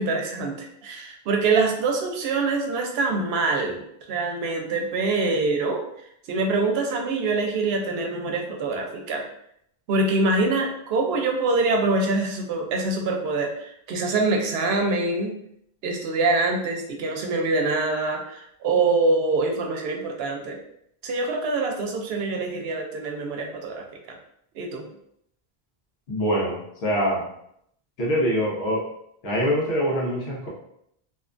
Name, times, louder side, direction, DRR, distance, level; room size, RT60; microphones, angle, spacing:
voice 1, 0.0-3.8 4.1-5.8 6.3-9.2 9.9-15.4 15.8-20.6 21.0-23.8 24.6-24.8, right 3 dB, 80° right, 2 dB, 0.8 m, -24 dB
voice 2, 26.1-27.2 28.0-28.8 29.2-30.5, equal, 80° left, -3 dB, 1.1 m, -24 dB
2.7 x 2.2 x 2.4 m, 0.74 s
omnidirectional pair, 1.0 m